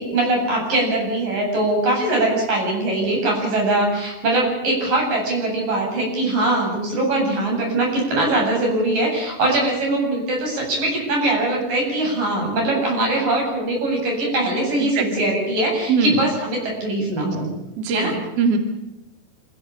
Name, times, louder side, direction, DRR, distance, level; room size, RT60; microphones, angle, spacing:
voice 1, 0.0-17.5 17.9-18.1, right 2 dB, 85° right, 0 dB, 9.7 m, -21 dB
voice 2, 14.8-15.3 15.9-16.3 17.8-18.6, right 4 dB, 50° right, 5 dB, 3.2 m, -22 dB
26.5 x 16.5 x 8.7 m, 0.93 s
omnidirectional pair, 3.8 m